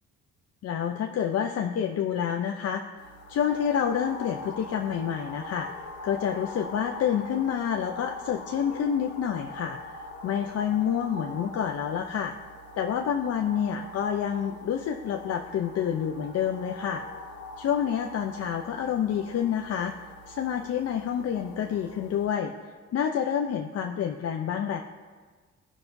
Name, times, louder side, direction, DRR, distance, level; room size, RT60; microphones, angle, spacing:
voice 1, 0.6-2.8 3.3-12.3 12.8-17.0 17.6-19.9 20.3-22.5 22.9-24.8, left 8 dB, 55° left, 3 dB, 0.6 m, -28 dB
sound 1, 3.0-22.3, left 2 dB, 75° left, 1.5 m, -43 dB
15.5 x 5.9 x 2.6 m, 1.5 s
cardioid pair, 90°, 30 cm